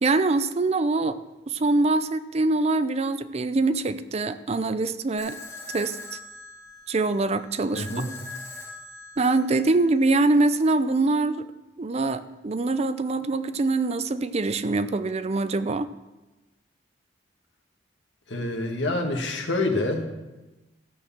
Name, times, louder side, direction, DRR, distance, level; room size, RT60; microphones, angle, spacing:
voice 1, 0.0-1.2 1.5-5.4 5.7-6.2 6.9-8.1 9.2-11.5 11.8-15.9, right 3 dB, 35° right, 12 dB, 0.5 m, -24 dB
sound 1, 5.2-10.2, left 3 dB, 15° left, 2.9 m, -42 dB
voice 2, 7.8-8.1 18.3-20.1, left 2 dB, 75° left, 3 dB, 1.8 m, -27 dB
13.5 x 6.4 x 7.3 m, 1.1 s
head